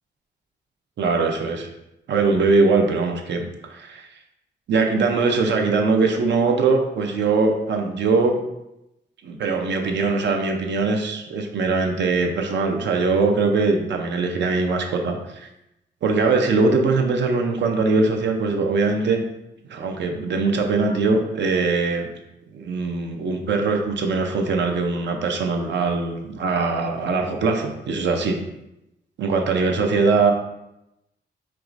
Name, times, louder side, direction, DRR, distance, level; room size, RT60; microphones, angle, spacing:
voice 1, 1.0-1.7 2.1-4.1 4.7-8.4 9.2-15.5 16.0-19.2 19.7-22.1 22.5-28.4 29.2-30.3, right 4 dB, 75° right, 3 dB, 0.6 m, -21 dB
4.7 x 3.0 x 2.5 m, 0.89 s
cardioid pair, 95°, 19 cm